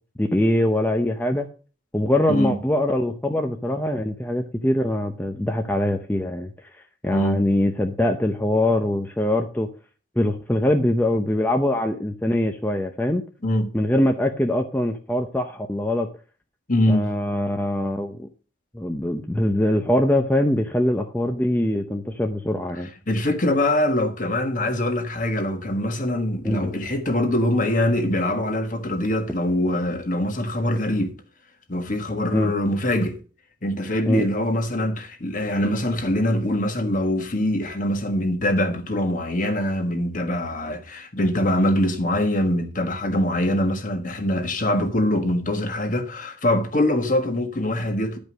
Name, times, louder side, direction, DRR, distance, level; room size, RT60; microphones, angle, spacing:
voice 1, 0.2-1.5 1.9-9.7 10.2-13.2 13.7-16.1 16.9-18.3 18.7-22.9 26.4-26.7 32.3-32.5 34.1-34.3, left 1 dB, 10° left, 0.6 m, -23 dB
voice 2, 16.7-17.1 23.1-31.2 31.7-33.2 33.6-48.2, left 1 dB, 45° left, 1.6 m, -23 dB
11.0 x 5.2 x 6.2 m
head